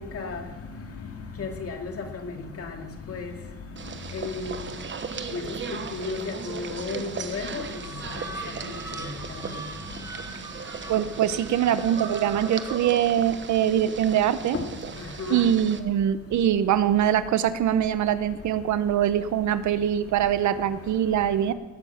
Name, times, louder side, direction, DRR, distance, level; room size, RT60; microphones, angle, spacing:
voice 1, 1.4-3.3 4.1-4.6 5.3-7.6 9.0-9.1 9.5-9.6 14.5-14.7 15.2-15.5, left 4 dB, 50° left, 4 dB, 2.2 m, -33 dB
sound 1, 3.8-15.8, right 6 dB, 40° right, 1.1 m, -37 dB
sound 2, 7.4-13.1, right 1 dB, 10° right, 1.2 m, -42 dB
voice 2, 10.9-14.6 15.3-21.5, right 10 dB, 70° right, 13 dB, 0.8 m, -23 dB
19.0 x 7.2 x 7.0 m, 1.1 s
cardioid pair, 90°, 30 cm